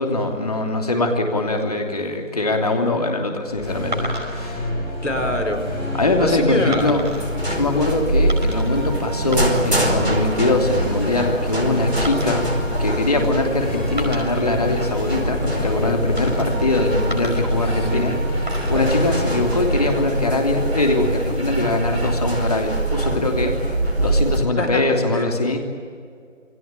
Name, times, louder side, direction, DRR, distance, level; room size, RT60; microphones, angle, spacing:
voice 1, 0.0-4.7 5.9-7.1 7.4-12.5 12.8-23.6 24.0-25.6, left 2 dB, 30° left, 3 dB, 3.1 m, -22 dB
sound 1, 3.5-21.0, left 2 dB, 5° right, 2.4 m, -29 dB
sound 2, 3.9-4.6 5.3-5.6 6.7-7.3 8.3-8.8 9.2-9.9 10.2-10.6 12.1-13.5 13.9-15.1 16.2-16.7 17.1-18.1 18.5-20.1 21.1-21.7, right 1 dB, 35° right, 4.9 m, -36 dB
voice 2, 5.0-5.6 6.2-6.9 17.8-18.2 24.6-24.8 25.1-25.3, left 1 dB, 65° left, 6 dB, 4.8 m, -25 dB
sound 3, 6.8-24.4, right 1 dB, 55° right, 4.7 m, -24 dB
28.5 x 21.0 x 9.1 m, 2.2 s
figure-of-eight pair, 165°, 39 cm